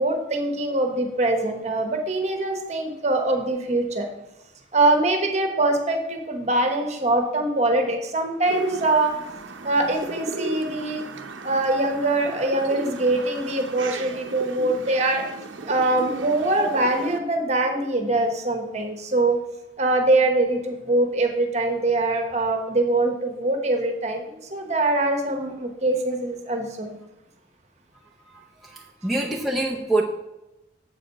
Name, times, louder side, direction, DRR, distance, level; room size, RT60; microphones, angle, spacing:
voice 1, 0.0-4.1 4.7-9.1 9.6-11.0 11.4-15.2 15.7-19.4 19.8-27.0, right 2 dB, 35° right, 4 dB, 1.0 m, -23 dB
sound 1, 8.5-17.2, right 3 dB, 90° right, 0.7 m, -35 dB
voice 2, 28.6-30.0, right 2 dB, ahead, -3 dB, 0.5 m, -25 dB
7.7 x 5.0 x 5.5 m, 0.95 s
head